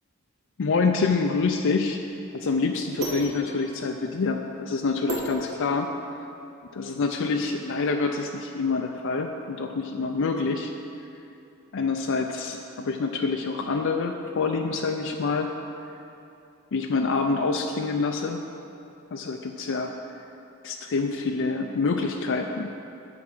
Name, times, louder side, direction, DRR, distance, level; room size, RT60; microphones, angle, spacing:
voice 1, 0.6-2.0 2.3-5.9 6.7-10.7 11.7-15.5 16.7-18.4 19.1-19.9 20.6-22.7, left 4 dB, 60° left, 3 dB, 0.5 m, -26 dB
sound 1, 0.9-6.1, right 1 dB, 75° right, 1.9 m, -36 dB
9.4 x 4.9 x 7.7 m, 2.8 s
head